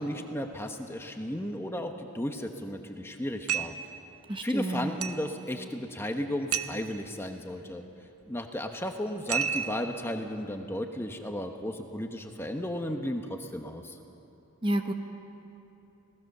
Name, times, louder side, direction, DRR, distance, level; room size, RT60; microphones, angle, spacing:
voice 1, 0.0-3.7 4.4-7.8 8.3-14.0, left 1 dB, 10° left, 4 dB, 1.1 m, -34 dB
sound 1, 3.5-3.9 5.0-5.3 6.5-6.9 9.3-9.9, right 8 dB, 85° right, 0.9 m, -31 dB
voice 2, 4.3-4.9 14.6-14.9, right 1 dB, 20° right, 5 dB, 1.0 m, -29 dB
27.0 x 18.5 x 6.8 m, 2.9 s
head